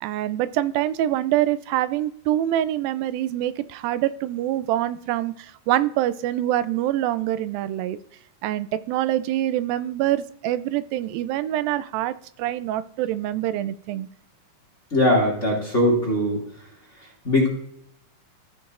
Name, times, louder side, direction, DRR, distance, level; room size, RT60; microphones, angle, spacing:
voice 1, 0.0-5.3 5.7-8.0 8.4-14.1, right 13 dB, 90° right, 14 dB, 2.3 m, -25 dB
voice 2, 14.9-16.4 17.2-17.5, left 1 dB, 25° left, -2 dB, 1.9 m, -20 dB
14.0 x 6.9 x 2.5 m, 0.69 s
omnidirectional pair, 4.0 m